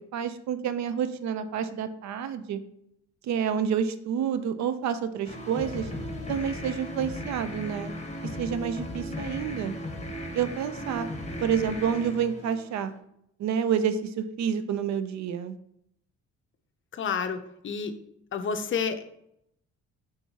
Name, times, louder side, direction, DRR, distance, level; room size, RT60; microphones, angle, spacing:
voice 1, 0.0-2.6 3.2-5.9 6.3-7.9 8.2-9.7 10.3-11.1 11.4-12.9 13.4-15.5, right 8 dB, 65° right, 11 dB, 0.5 m, -29 dB
sound 1, 5.2-13.0, left 1 dB, 20° left, 1.0 m, -37 dB
voice 2, 17.0-17.9 18.3-19.0, left 6 dB, 40° left, 8 dB, 0.5 m, -30 dB
4.3 x 3.6 x 2.8 m, 0.75 s
cardioid pair, 90°, 30 cm